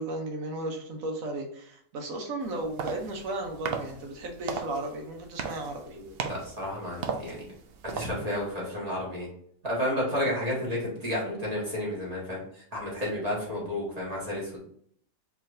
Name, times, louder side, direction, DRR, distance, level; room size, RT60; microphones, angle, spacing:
voice 1, 0.0-6.0, right 2 dB, 80° right, 2 dB, 1.2 m, -35 dB
sound 1, 2.4-8.5, right 6 dB, 65° right, 0.6 m, -38 dB
voice 2, 5.9-7.5 7.8-9.3 9.6-14.6, left 1 dB, 30° right, -5 dB, 1.7 m, -31 dB
4.6 x 3.1 x 2.6 m, 0.63 s
omnidirectional pair, 1.4 m